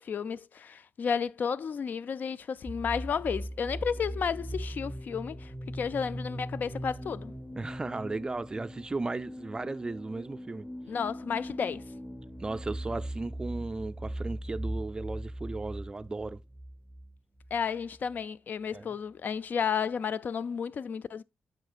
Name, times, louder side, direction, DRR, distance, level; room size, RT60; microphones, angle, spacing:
voice 1, 0.0-7.3 10.9-11.8 17.5-21.2, left 6 dB, 50° left, 0.3 m, -32 dB
sound 1, 2.7-18.2, equal, 5° left, 0.9 m, -40 dB
voice 2, 7.6-10.7 12.4-16.4 18.7-18.9, right 3 dB, 20° right, 0.4 m, -35 dB
7.8 x 5.9 x 2.4 m
cardioid pair, 105°, 4 cm